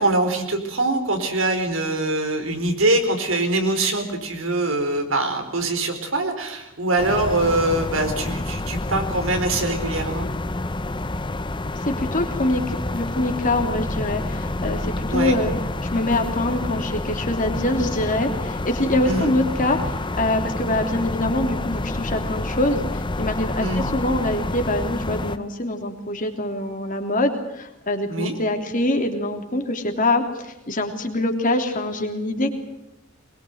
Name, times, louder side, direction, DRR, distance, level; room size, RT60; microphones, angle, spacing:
voice 1, 0.0-10.3 15.1-15.4 19.0-19.3 23.6-23.8 28.1-28.3, right 2 dB, 80° right, 6 dB, 4.3 m, -23 dB
sound 1, 7.0-25.4, left 2 dB, 25° left, 0.8 m, -28 dB
voice 2, 11.8-15.5 15.9-32.5, left 1 dB, 40° left, 4 dB, 3.2 m, -24 dB
22.5 x 22.0 x 8.0 m, 0.89 s
head